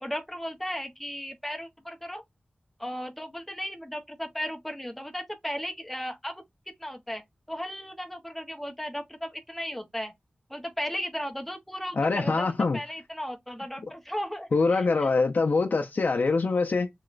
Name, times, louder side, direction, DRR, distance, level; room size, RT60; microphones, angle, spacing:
voice 1, 0.0-2.2 2.8-6.4 6.8-10.1 10.5-15.1, equal, 5° left, 0.9 m, -35 dB
voice 2, 12.0-12.8 14.5-16.9, left 3 dB, 65° left, 0.4 m, -24 dB
3.1 x 2.9 x 2.4 m
wide cardioid pair, 75°, 3 cm